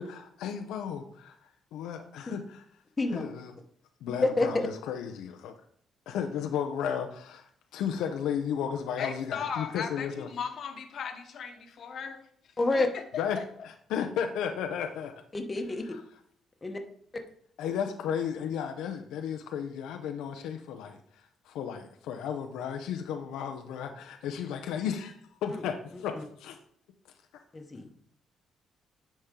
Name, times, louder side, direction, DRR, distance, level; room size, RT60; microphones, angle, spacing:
voice 1, 0.0-1.4 1.7-2.6 3.1-3.5 4.0-5.5 6.1-10.3 13.2-13.4 13.6-15.1 15.9-16.0 17.6-21.0 21.4-25.1 25.4-26.6, left 8 dB, 90° left, 4 dB, 0.6 m, -34 dB
voice 2, 4.2-4.7 12.6-12.9 15.3-15.9 16.6-16.8 25.5-25.6 26.1-26.2 27.5-27.9, left 2 dB, 25° left, 4 dB, 1.1 m, -28 dB
voice 3, 9.0-12.3 12.9-13.4, left 6 dB, 65° left, 6 dB, 1.1 m, -37 dB
10.0 x 4.3 x 3.7 m, 0.64 s
cardioid pair, 90°, 0 cm